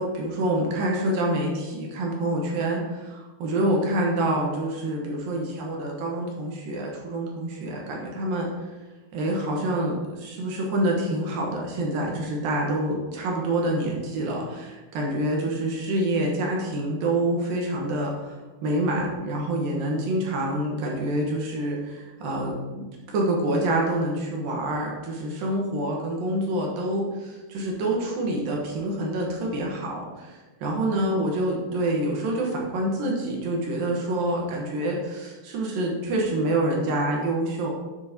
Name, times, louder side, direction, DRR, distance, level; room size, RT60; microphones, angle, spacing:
voice 1, 0.0-8.7 9.1-37.7, right 1 dB, 70° right, -1 dB, 2.7 m, -27 dB
9.8 x 6.4 x 2.8 m, 1.2 s
omnidirectional pair, 4.6 m